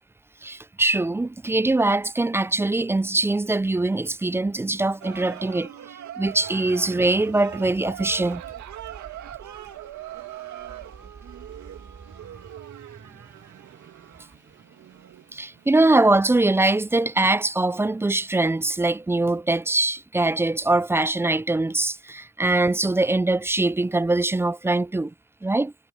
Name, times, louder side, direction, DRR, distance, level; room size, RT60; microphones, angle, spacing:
voice 1, 0.4-5.7 6.2-8.4 15.3-25.1 25.4-25.7, right 2 dB, 10° right, 0.3 m, -22 dB
sound 1, 5.0-18.4 18.7-18.8, right 11 dB, 70° right, 2.1 m, -42 dB
sound 2, 6.2-18.7, right 5 dB, 40° right, 4.0 m, -50 dB
cardioid pair, 90°, 30 cm